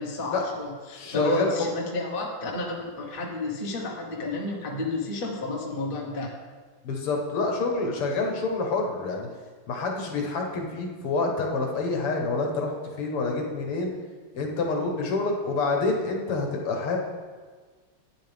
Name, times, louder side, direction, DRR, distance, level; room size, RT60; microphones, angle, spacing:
voice 1, 0.0-6.3, left 2 dB, 30° left, -1 dB, 1.2 m, -31 dB
voice 2, 0.9-1.5 6.8-9.3 9.7-12.7 13.0-13.9 14.3-17.0, left 3 dB, 80° left, 1 dB, 2.2 m, -27 dB
11.0 x 8.6 x 3.5 m, 1.5 s
omnidirectional pair, 2.4 m